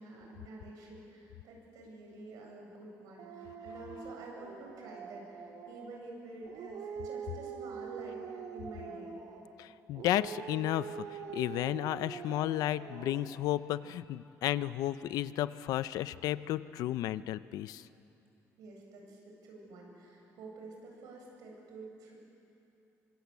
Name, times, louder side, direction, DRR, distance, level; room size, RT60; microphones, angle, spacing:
voice 1, 0.0-9.2 18.6-22.1, right 2 dB, 90° right, 0 dB, 8.0 m, -49 dB
Dog, 3.2-6.0 6.4-9.5 9.9-13.5, right 6 dB, 70° right, 2.5 m, -44 dB
voice 2, 9.6-17.9, left 13 dB, 85° left, 15 dB, 0.7 m, -33 dB
28.0 x 24.5 x 8.3 m, 2.8 s
cardioid pair, 145°, 6 cm